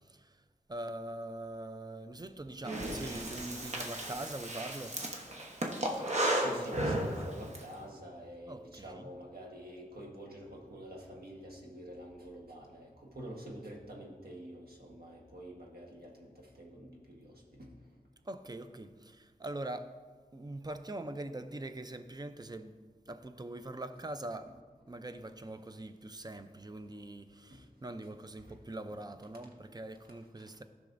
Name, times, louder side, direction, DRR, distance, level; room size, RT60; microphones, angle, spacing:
voice 1, 0.7-5.0 8.5-9.1 18.3-19.9 20.3-22.7 23.1-24.5 24.9-30.6, right 1 dB, 25° right, 0.5 m, -43 dB
Breathing, 2.6-7.6, right 1 dB, 50° right, 1.1 m, -34 dB
voice 2, 6.2-17.7 27.5-27.6 28.4-28.5, equal, 85° right, 1.3 m, -48 dB
14.0 x 6.0 x 2.6 m
wide cardioid pair, 50°, 15 cm